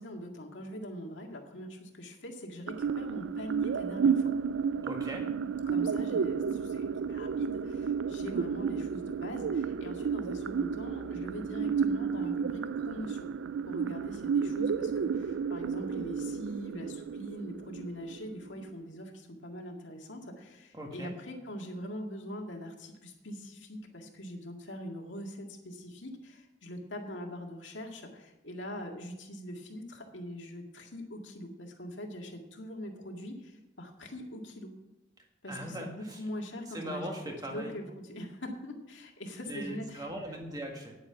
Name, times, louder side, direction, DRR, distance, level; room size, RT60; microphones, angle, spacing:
voice 1, 0.0-4.3 5.7-13.3 13.7-34.7 35.4-37.1 37.5-40.1, equal, 80° left, 2 dB, 1.9 m, -42 dB
sound 1, 2.7-18.7, right 6 dB, 85° right, 0.4 m, -32 dB
voice 2, 4.8-5.2 20.7-21.1 35.5-36.2 36.7-37.7 39.5-41.0, right 1 dB, 20° right, 1 dB, 1.8 m, -39 dB
9.8 x 9.0 x 5.8 m, 0.95 s
head